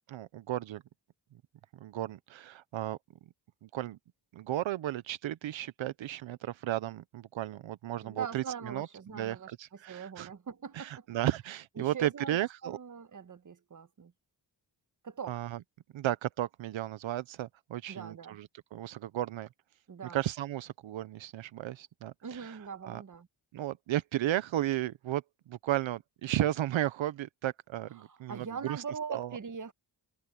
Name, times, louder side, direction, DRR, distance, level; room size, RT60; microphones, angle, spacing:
voice 1, 0.1-0.8 1.7-3.0 3.6-4.0 4.3-8.9 9.1-10.3 10.7-12.8 15.3-15.6 15.9-19.5 20.0-22.6 22.8-23.0 23.5-28.8 29.1-29.4, right 13 dB, 80° right, 0.8 m, -34 dB
voice 2, 8.0-9.5 9.9-11.1 11.8-14.1 15.0-15.4 17.9-18.4 19.9-20.2 22.2-23.3 28.0-29.7, right 6 dB, 40° right, 1.4 m, -41 dB
cardioid pair, 85°, 45 cm